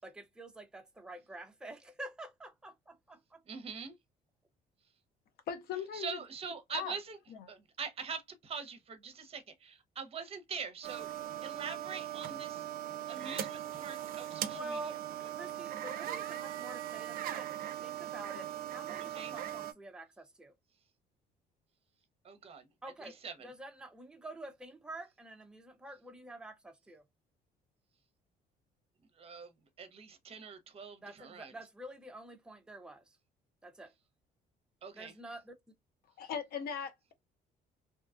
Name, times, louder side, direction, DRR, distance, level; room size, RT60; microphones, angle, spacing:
voice 1, 0.0-3.4 14.5-15.0 15.3-20.5 22.8-23.1 23.4-27.0 31.0-33.2 33.6-33.9 34.9-35.5, right 1 dB, 5° right, 0.5 m, -48 dB
voice 2, 3.5-4.0 5.9-7.2 7.5-11.1 11.4-12.6 13.1-15.3 19.0-19.4 22.2-22.7 23.0-23.5 29.1-29.5 29.8-31.6 34.8-35.1, right 6 dB, 35° right, 0.7 m, -44 dB
voice 3, 5.5-6.2 6.7-6.9 36.2-37.1, left 7 dB, 65° left, 0.7 m, -38 dB
sound 1, 10.8-19.7, right 11 dB, 60° right, 0.4 m, -40 dB
2.7 x 2.3 x 2.4 m
cardioid pair, 110°, 17 cm